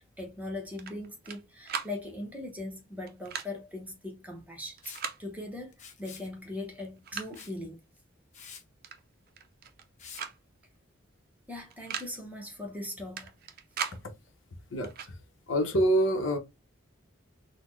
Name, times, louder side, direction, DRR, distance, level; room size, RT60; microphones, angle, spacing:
voice 1, 0.0-4.9 5.2-7.8 11.5-13.4, left 1 dB, 10° right, 0.8 m, -40 dB
sound 1, 0.8-1.4 1.7-1.9 3.1-3.5 4.8-5.2 6.3-6.4 6.8-7.5 8.8-9.0 9.3-9.8 10.1-10.4 10.6-10.7 11.7-12.1 13.2-14.0 14.8-15.1, right 7 dB, 45° right, 0.5 m, -38 dB
Liquid, 4.8-5.1 5.7-6.3 7.3-7.6 8.0-8.1 8.3-8.6 10.0-10.2, left 7 dB, 35° left, 0.6 m, -47 dB
voice 2, 14.7-15.2 15.5-16.4, right 1 dB, 65° left, 0.8 m, -26 dB
4.0 x 2.1 x 3.0 m
head